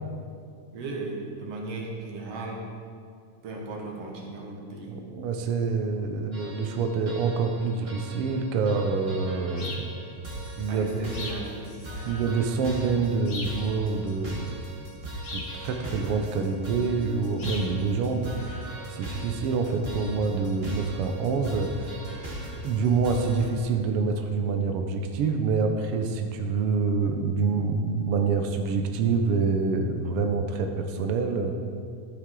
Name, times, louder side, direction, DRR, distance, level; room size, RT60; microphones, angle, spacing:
voice 1, 0.7-2.7 3.4-5.0 10.7-12.1, right 3 dB, 60° right, -1 dB, 2.2 m, -36 dB
voice 2, 4.9-9.9 10.6-10.9 12.0-14.5 15.3-22.0 22.6-31.6, right 4 dB, 85° right, 5 dB, 1.3 m, -26 dB
sound 1, 6.3-23.5, right 1 dB, 40° right, 0.8 m, -39 dB
sound 2, 9.6-9.9 11.1-11.5 13.3-13.6 15.2-15.6 17.4-17.7, left 2 dB, 45° left, 1.5 m, -37 dB
12.0 x 8.0 x 3.7 m, 2.3 s
omnidirectional pair, 3.5 m